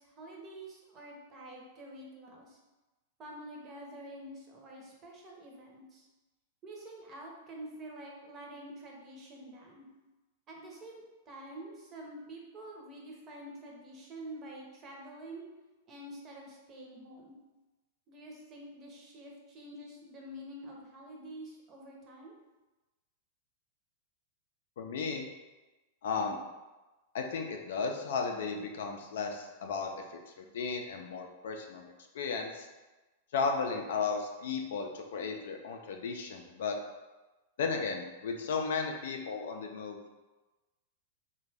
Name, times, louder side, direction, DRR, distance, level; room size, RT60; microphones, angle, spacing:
voice 1, 0.0-2.6 3.2-6.1 6.6-9.9 10.5-15.5 15.9-17.4 18.1-22.3, right 1 dB, 30° right, -1 dB, 0.7 m, -47 dB
voice 2, 24.8-25.3 26.0-26.4 27.1-29.9 30.4-32.7 33.3-36.7 37.6-40.0, left 5 dB, 75° left, 3 dB, 0.4 m, -34 dB
2.5 x 2.2 x 3.3 m, 1.1 s
hypercardioid pair, 125°, 0 cm